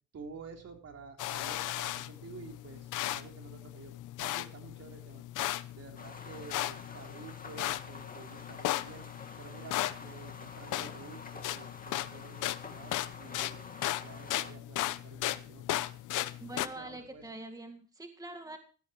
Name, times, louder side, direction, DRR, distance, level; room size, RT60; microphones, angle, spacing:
voice 1, 0.1-3.9 4.2-5.2 5.7-9.1 9.4-13.7 14.0-15.8 16.5-17.2, right 5 dB, 55° right, 3 dB, 3.9 m, -50 dB
sound 1, 1.2-16.7, left 15 dB, 85° left, 0.8 m, -37 dB
sound 2, 6.0-14.5, left 4 dB, 30° left, 2.4 m, -48 dB
voice 2, 16.4-18.6, right 1 dB, 10° right, 5 dB, 2.1 m, -44 dB
17.0 x 13.0 x 3.1 m, 0.37 s
cardioid pair, 90°, 30 cm